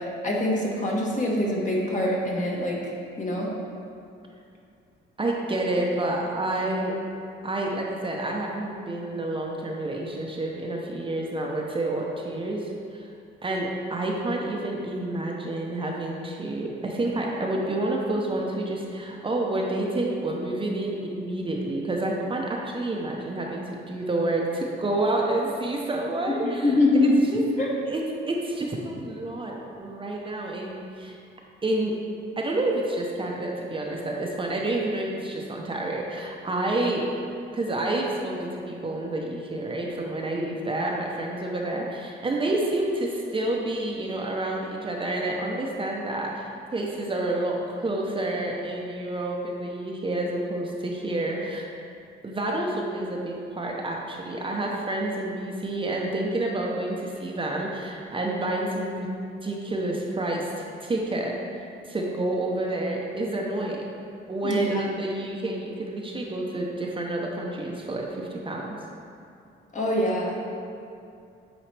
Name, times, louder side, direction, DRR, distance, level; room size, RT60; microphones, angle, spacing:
voice 1, 0.2-2.9 3.2-3.5 26.3-27.2 27.6-27.7 64.4-64.8 69.7-70.4, left 1 dB, 40° left, -3 dB, 1.4 m, -24 dB
voice 2, 5.2-6.9 7.4-13.1 13.4-26.7 27.3-27.4 27.9-28.0 28.3-31.2 31.6-32.0 32.4-37.1 37.5-51.7 52.2-59.1 59.4-63.9 64.3-68.6, right 2 dB, 25° right, -1 dB, 0.7 m, -29 dB
8.8 x 4.1 x 3.3 m, 2.5 s
cardioid pair, 90°, 20 cm